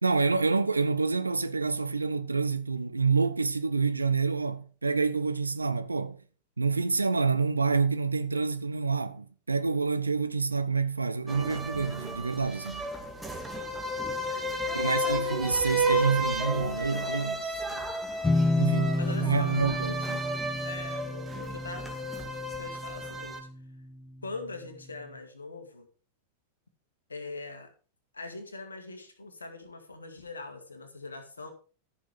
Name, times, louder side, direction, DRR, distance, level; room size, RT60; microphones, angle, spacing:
voice 1, 0.0-6.2 6.6-12.8 14.7-17.6 18.6-20.2, right 4 dB, 80° right, 0.8 m, -28 dB
sound 1, 11.3-23.4, right 1 dB, 5° right, 2.1 m, -33 dB
voice 2, 14.2-15.1 17.6-17.9 18.9-19.6 19.8-20.0 20.6-21.9 22.6-23.4 24.2-25.9 27.1-27.7 28.1-31.5, left 3 dB, 75° left, 2.1 m, -42 dB
sound 2, 18.2-23.8, left 1 dB, 10° left, 0.7 m, -30 dB
13.5 x 6.4 x 5.0 m
figure-of-eight pair, 90°, 0 cm